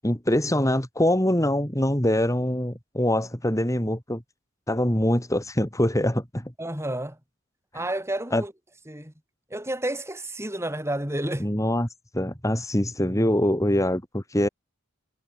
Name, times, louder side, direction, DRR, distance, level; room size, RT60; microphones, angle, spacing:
voice 1, 0.0-4.2 4.7-6.5 8.3-8.4 11.4-11.9 12.1-14.5, left 1 dB, 15° left, 4.0 m, -24 dB
voice 2, 6.6-7.2 7.7-8.5 8.9-9.1 9.5-11.5, right 1 dB, 15° right, 5.7 m, -30 dB
head